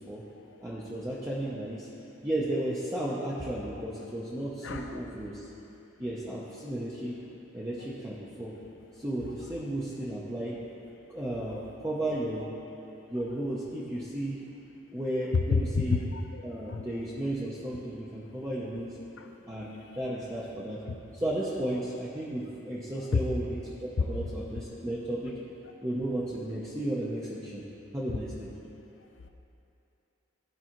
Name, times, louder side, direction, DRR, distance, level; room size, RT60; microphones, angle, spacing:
voice 1, 0.6-1.9 2.2-5.5 6.0-7.2 7.5-8.5 9.0-10.5 11.1-12.5 13.1-14.4 14.9-16.0 16.4-19.0 19.5-20.8 21.1-25.4 25.8-27.7 27.9-28.5, right 1 dB, 15° right, -8 dB, 0.6 m, -34 dB
voice 2, 4.6-5.0 15.3-16.8 17.7-17.8 23.1-23.2 24.2-24.3, left 4 dB, 60° left, 5 dB, 0.5 m, -29 dB
14.0 x 4.7 x 3.0 m, 2.9 s
head